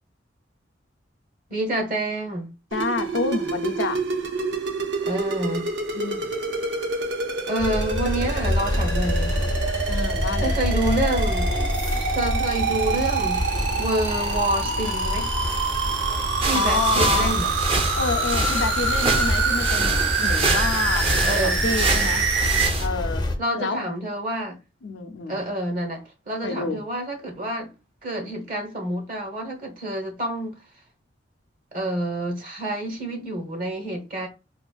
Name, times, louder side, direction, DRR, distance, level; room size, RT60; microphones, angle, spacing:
voice 1, 1.5-2.5 5.0-5.6 7.5-9.3 10.4-11.5 12.1-13.4 13.8-15.3 16.4-17.5 21.2-21.6 23.4-24.6 25.3-27.7 28.0-30.6 31.7-34.3, right 1 dB, 50° right, 1.0 m, -28 dB
voice 2, 2.7-4.1 5.9-6.3 9.9-10.5 16.5-17.3 18.0-22.3 22.8-23.9 24.8-25.4 26.4-26.8, left 4 dB, 90° left, 0.6 m, -28 dB
sound 1, 2.7-22.7, right 4 dB, 70° right, 0.7 m, -26 dB
sound 2, 7.6-23.4, left 1 dB, 25° left, 0.5 m, -27 dB
sound 3, 16.4-22.9, right 2 dB, 30° right, 0.6 m, -27 dB
4.1 x 2.5 x 2.3 m
head